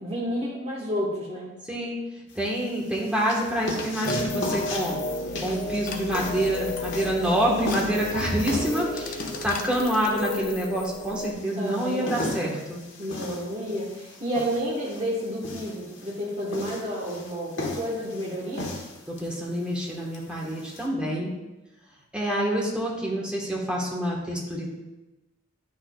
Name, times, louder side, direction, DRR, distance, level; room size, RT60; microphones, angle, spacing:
voice 1, 0.0-1.5 11.6-12.1 13.0-18.7, equal, 30° right, -5 dB, 1.2 m, -30 dB
sound 1, 2.3-20.9, left 2 dB, 60° left, 1.2 m, -37 dB
voice 2, 2.3-5.0 5.4-12.8 19.1-21.3 22.1-24.7, right 1 dB, 5° right, -3 dB, 1.2 m, -27 dB
sound 2, 4.0-11.3, left 2 dB, 40° left, 0.6 m, -32 dB
10.0 x 6.3 x 2.3 m, 1.0 s
head